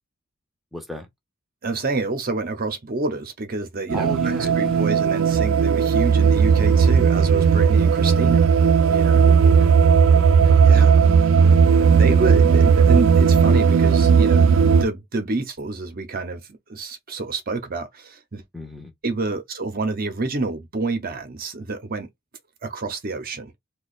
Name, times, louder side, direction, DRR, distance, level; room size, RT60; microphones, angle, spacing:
voice 1, 0.7-1.1 3.9-4.8 8.0-8.3 9.2-9.7 10.1-11.0 11.7-12.0 18.5-18.9, left 1 dB, ahead, 0.7 m, -36 dB
voice 2, 1.6-8.5 8.9-9.2 10.7-11.0 11.9-18.4 19.0-22.1 22.6-23.5, right 3 dB, 45° right, 0.7 m, -28 dB
sound 1, 3.9-14.9, right 6 dB, 80° right, 0.4 m, -16 dB
2.9 x 2.3 x 4.0 m
head